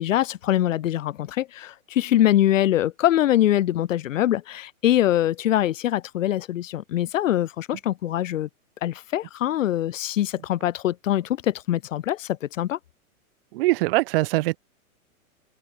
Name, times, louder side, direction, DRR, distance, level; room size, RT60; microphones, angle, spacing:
voice 1, 0.0-8.5 8.8-12.8, left 12 dB, 60° left, 3.0 m, -23 dB
voice 2, 13.5-14.6, right 21 dB, 40° right, 2.6 m, -22 dB
open air
hypercardioid pair, 155°, 43 cm